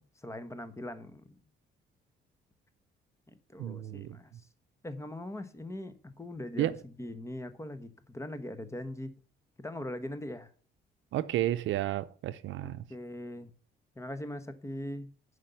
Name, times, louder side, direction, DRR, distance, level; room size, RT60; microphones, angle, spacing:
voice 1, 0.0-1.4 3.3-4.3 4.8-9.2 9.6-10.5 12.6-13.5 13.9-15.1, left 1 dB, 15° left, 1.1 m, -41 dB
voice 2, 3.6-4.2 6.6-6.7 11.1-12.8, right 13 dB, 75° right, 0.6 m, -32 dB
7.5 x 5.2 x 6.9 m
cardioid pair, 90°, 20 cm